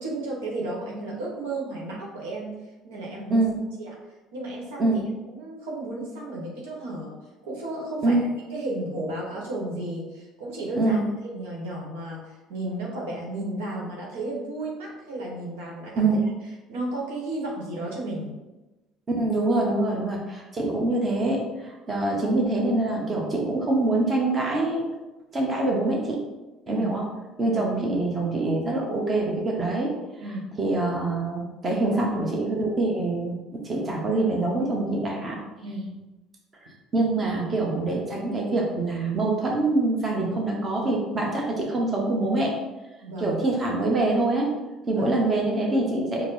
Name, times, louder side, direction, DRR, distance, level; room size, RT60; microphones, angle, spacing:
voice 1, 0.0-2.6 2.8-3.4 3.8-4.0 4.3-5.0 5.3-7.1 7.4-8.2 8.5-11.0 11.3-16.1 16.7-18.3 26.7-26.9 27.4-27.6 30.2-30.5 35.6-35.9 43.0-43.4 44.9-45.1, right 1 dB, 90° right, -3 dB, 0.9 m, -33 dB
voice 2, 19.2-24.9 25.3-26.2 26.7-27.0 27.4-29.9 30.6-35.4 36.9-42.6 43.2-44.5 44.9-46.3, right 2 dB, 30° right, -1 dB, 1.0 m, -25 dB
4.3 x 2.0 x 4.0 m, 1.1 s
supercardioid pair, 80°, 0 cm